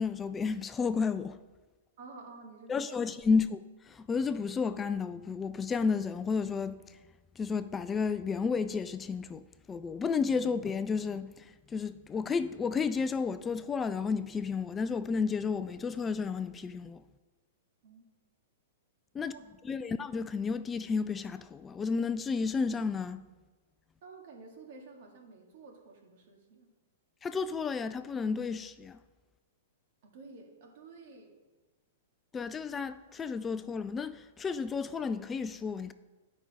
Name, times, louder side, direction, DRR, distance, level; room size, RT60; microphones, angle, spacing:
voice 1, 0.0-1.4 2.7-3.6 3.8-7.0 7.4-17.0 19.1-19.3 19.6-23.2 27.2-29.0 32.3-35.9, left 5 dB, 15° left, 0.3 m, -32 dB
voice 2, 2.0-3.1 17.8-18.0 19.2-19.5 24.0-26.7 30.0-31.3, right 4 dB, 60° right, 2.0 m, -51 dB
9.9 x 5.3 x 4.9 m
hypercardioid pair, 130°, 0 cm